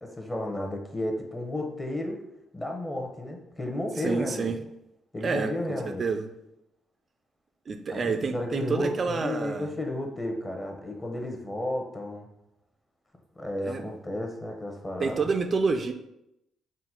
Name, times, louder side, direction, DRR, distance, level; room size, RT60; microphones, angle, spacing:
voice 1, 0.0-2.2 2.5-4.5 5.1-6.0 7.9-12.3 13.4-15.2, left 1 dB, 20° left, 2 dB, 0.8 m, -32 dB
voice 2, 4.0-4.6 5.2-6.3 7.7-9.7 13.6-13.9 15.0-15.9, right 4 dB, 40° right, 7 dB, 0.3 m, -28 dB
3.9 x 2.2 x 4.3 m, 0.84 s
cardioid pair, 90°, 0 cm